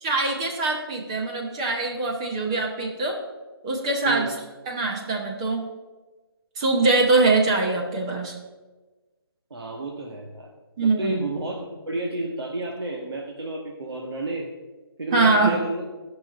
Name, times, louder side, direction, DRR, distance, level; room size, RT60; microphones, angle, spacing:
voice 1, 0.0-3.2 3.6-4.3 4.7-5.6 6.6-8.3 10.8-11.3 15.1-15.6, right 3 dB, 15° right, 1 dB, 0.8 m, -23 dB
voice 2, 9.5-10.5 10.8-14.5 15.0-15.8, right 2 dB, 80° right, -1 dB, 1.5 m, -31 dB
13.5 x 5.7 x 5.1 m, 1.3 s
hypercardioid pair, 175°, 13 cm